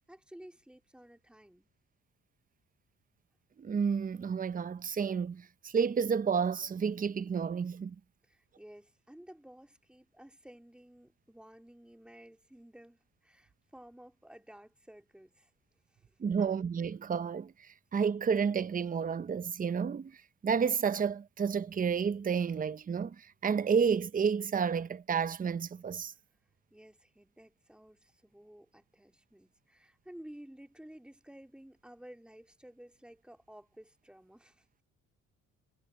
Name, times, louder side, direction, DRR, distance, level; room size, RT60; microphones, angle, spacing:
voice 1, 0.0-1.7 8.2-15.5 15.9-16.1 16.4-16.6 26.7-34.7, right 1 dB, 5° right, 2.5 m, -54 dB
voice 2, 3.6-8.0 16.2-17.5 17.9-20.2 20.4-26.1, right 6 dB, 30° right, 0.7 m, -30 dB
cardioid pair, 90°, 30 cm